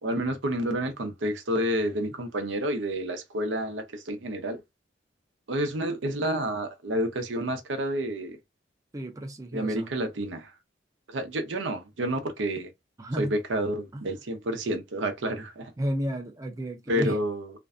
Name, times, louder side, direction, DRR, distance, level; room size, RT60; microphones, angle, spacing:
voice 1, 0.0-4.6 5.5-8.4 9.5-10.5 11.1-12.7 13.2-15.7 16.9-17.5, right 1 dB, 80° right, 0.6 m, -29 dB
voice 2, 8.9-9.9 13.0-13.3 13.9-14.1 15.8-17.2, right 1 dB, 20° right, 0.4 m, -32 dB
2.5 x 2.2 x 2.4 m
head